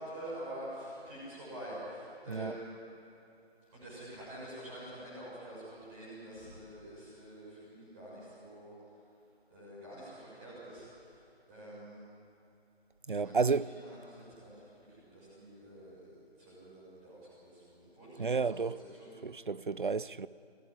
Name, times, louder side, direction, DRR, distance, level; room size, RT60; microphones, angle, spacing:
voice 1, 0.0-2.7 3.7-8.7 9.5-11.2 11.5-12.1 13.2-13.4 13.8-14.6 14.9-18.7 19.0-19.1, right 1 dB, 10° right, 6.4 m, -47 dB
voice 2, 13.1-13.7 18.2-18.8 19.2-20.3, right 4 dB, 50° right, 0.6 m, -31 dB
23.5 x 17.0 x 10.0 m
figure-of-eight pair, 165°, 32 cm